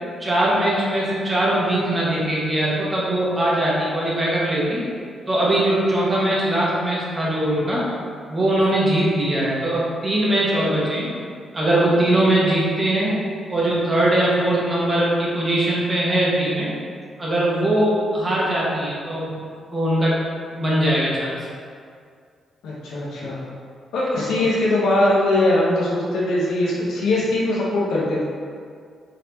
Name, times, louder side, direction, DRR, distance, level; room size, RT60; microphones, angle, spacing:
voice 1, 0.2-4.8 5.3-7.8 8.3-11.1 11.5-13.2 13.5-16.7 17.2-19.4 19.7-20.2 20.5-21.4, right 1 dB, 30° right, -5 dB, 1.1 m, -21 dB
voice 2, 22.6-23.4 23.9-28.2, left 1 dB, 85° left, -6 dB, 1.0 m, -21 dB
3.8 x 3.5 x 2.9 m, 2.2 s
cardioid pair, 80°, 0 cm